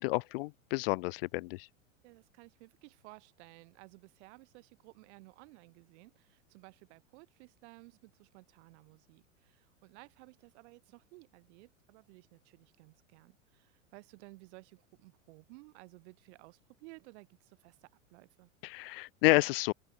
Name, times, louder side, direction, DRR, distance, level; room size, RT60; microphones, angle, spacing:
voice 1, 0.0-1.7 18.6-19.7, left 23 dB, 45° left, 0.5 m, -30 dB
voice 2, 2.0-18.5, right 25 dB, 55° right, 3.8 m, -56 dB
open air
hypercardioid pair, 100°, 40 cm